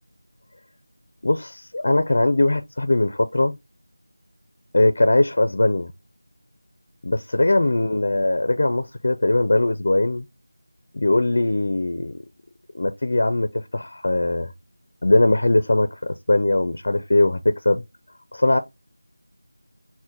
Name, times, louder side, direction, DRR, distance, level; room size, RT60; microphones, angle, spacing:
voice 1, 1.2-3.6 4.7-5.9 7.0-10.2 10.9-12.2 12.7-14.5 15.0-17.8 18.3-18.6, left 2 dB, 45° left, 0.4 m, -20 dB
5.9 x 2.1 x 3.7 m
figure-of-eight pair, 175°, 0 cm